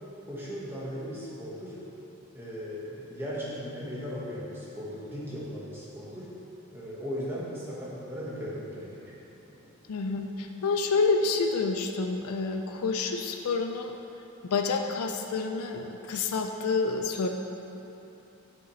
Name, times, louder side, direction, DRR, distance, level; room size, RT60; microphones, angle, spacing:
voice 1, 0.3-1.8 2.3-6.3 6.7-9.2, equal, 10° right, -7 dB, 1.3 m, -37 dB
voice 2, 9.9-13.9 14.4-17.3, left 4 dB, 80° left, 4 dB, 0.4 m, -28 dB
8.4 x 6.6 x 3.1 m, 2.9 s
head